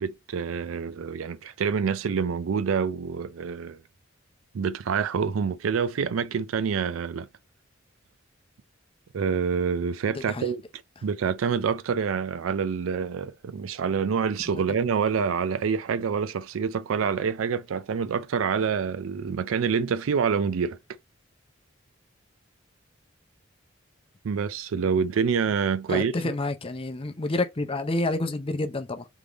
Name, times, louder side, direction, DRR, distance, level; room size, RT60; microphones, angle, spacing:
voice 1, 0.0-3.8 4.5-7.3 9.1-10.6 11.0-20.8 24.2-26.2, right 6 dB, 90° right, 0.4 m, -27 dB
voice 2, 10.1-10.5 25.9-29.1, left 2 dB, 30° left, 0.6 m, -29 dB
3.6 x 3.4 x 3.9 m
head